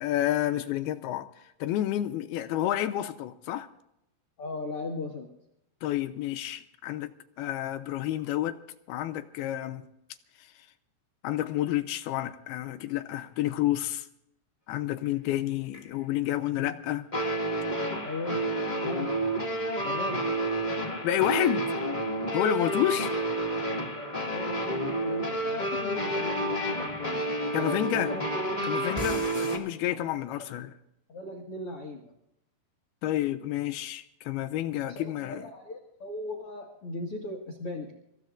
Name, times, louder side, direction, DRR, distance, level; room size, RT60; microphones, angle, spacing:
voice 1, 0.0-1.3 1.6-3.7 5.8-7.1 7.4-8.6 8.9-9.8 11.2-14.1 14.7-17.0 21.0-21.7 22.3-23.1 27.5-28.1 28.6-30.7 33.0-35.4, left 13 dB, 80° left, 2.6 m, -29 dB
voice 2, 4.4-5.3 16.5-16.7 18.0-18.5 18.8-19.1 19.8-20.2 23.0-23.1 23.9-28.2 29.9-30.0 31.1-32.1 34.8-37.9, left 2 dB, 45° left, 2.1 m, -38 dB
sound 1, 15.7-15.8 17.1-29.6, right 1 dB, 20° left, 1.1 m, -30 dB
29.0 x 15.5 x 2.5 m
omnidirectional pair, 4.6 m